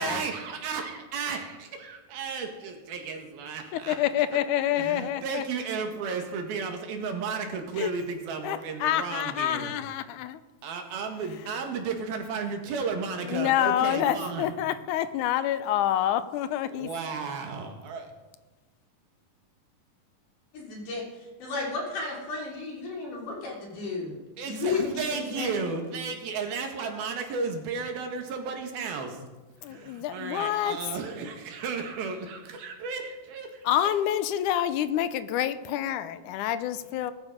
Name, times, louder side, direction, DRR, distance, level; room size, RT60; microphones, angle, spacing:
voice 1, 0.0-4.0 4.7-9.7 10.6-14.5 16.6-18.1 24.4-29.2 29.6-33.8, right 5 dB, 90° right, 4 dB, 3.8 m, -33 dB
voice 2, 3.7-5.4 7.8-7.9 8.4-10.4 13.3-16.9 29.6-30.8 33.6-37.1, left 11 dB, 75° left, 12 dB, 2.0 m, -27 dB
voice 3, 20.5-24.2 24.5-25.7, left 4 dB, 60° left, -2 dB, 4.6 m, -33 dB
20.5 x 12.5 x 5.1 m, 1.2 s
omnidirectional pair, 4.2 m